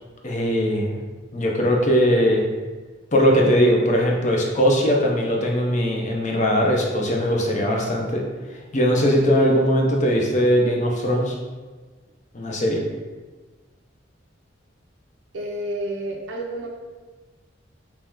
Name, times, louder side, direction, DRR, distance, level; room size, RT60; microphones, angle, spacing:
voice 1, 0.2-1.0 1.3-2.5 3.1-8.2 8.7-11.3 12.3-12.8, equal, 40° left, -1 dB, 0.6 m, -20 dB
voice 2, 15.3-16.7, right 1 dB, 80° right, -1 dB, 0.5 m, -30 dB
3.1 x 2.9 x 3.6 m, 1.3 s
head